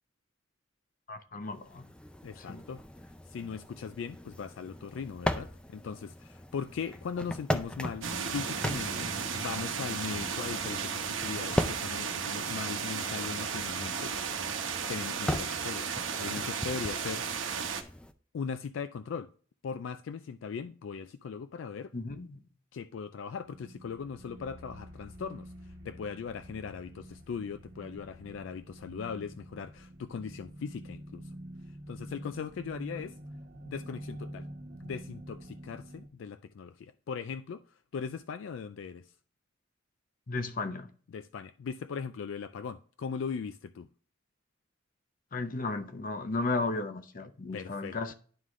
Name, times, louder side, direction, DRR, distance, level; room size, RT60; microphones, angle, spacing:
voice 1, 1.1-1.9 2.4-2.7 21.9-22.5 40.3-40.9 45.3-48.1, left 3 dB, 45° left, 0.7 m, -34 dB
sound 1, 1.5-18.1, left 1 dB, 5° left, 0.4 m, -39 dB
voice 2, 2.2-2.8 3.3-14.1 14.9-15.9 16.1-17.6 18.3-19.3 19.6-21.9 22.7-31.2 31.9-33.2 33.6-34.5 34.8-37.6 37.9-39.1 41.1-43.9 47.5-48.0, left 6 dB, 75° left, 0.3 m, -39 dB
sound 2, 8.0-17.8, right 6 dB, 90° right, 0.9 m, -34 dB
sound 3, 23.4-36.1, equal, 65° right, 1.1 m, -47 dB
11.0 x 3.8 x 3.1 m
head